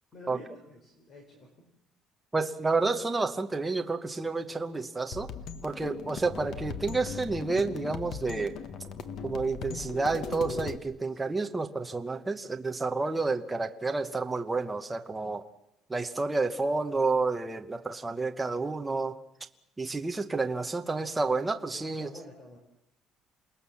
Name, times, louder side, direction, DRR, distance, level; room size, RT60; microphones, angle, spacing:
voice 1, 0.1-1.7 11.1-11.4 21.7-22.6, left 1 dB, 30° left, 3 dB, 4.1 m, -49 dB
voice 2, 2.3-5.3 5.6-8.6 9.2-15.4 15.9-19.2 19.8-22.1, right 3 dB, 10° right, 5 dB, 1.0 m, -30 dB
sound 1, 5.1-10.8, left 6 dB, 50° left, 1.6 m, -39 dB
28.0 x 19.5 x 7.1 m, 0.82 s
cardioid pair, 175°, 0 cm